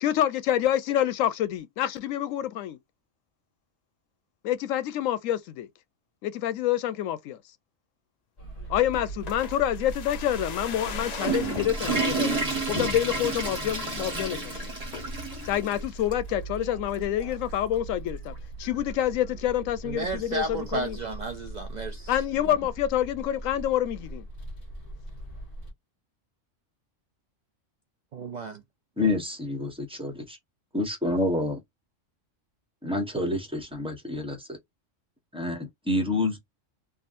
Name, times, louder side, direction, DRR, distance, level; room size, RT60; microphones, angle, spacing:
voice 1, 0.0-2.8 4.4-5.7 6.2-7.4 8.7-12.4 12.7-14.5 15.5-18.3 18.6-21.0 22.1-24.2, left 11 dB, 90° left, 1.0 m, -27 dB
sound 1, 8.4-25.7, right 2 dB, 30° left, 1.0 m, -40 dB
sound 2, 8.9-12.2 12.7-13.4 13.8-13.9 14.1-14.4 14.9-15.2 15.7-16.4 16.7-16.8, left 5 dB, 50° left, 0.5 m, -40 dB
Water / Toilet flush, 10.8-15.8 16.1-16.2 16.9-17.0 18.3-18.4, right 3 dB, 30° right, 1.0 m, -30 dB
voice 2, 19.8-22.1 22.4-22.6 28.1-28.6, right 3 dB, 65° right, 0.4 m, -33 dB
voice 3, 29.0-30.4 30.7-31.6 32.8-34.5 35.3-36.4, left 2 dB, 5° right, 0.9 m, -28 dB
3.6 x 2.3 x 2.5 m
omnidirectional pair, 1.3 m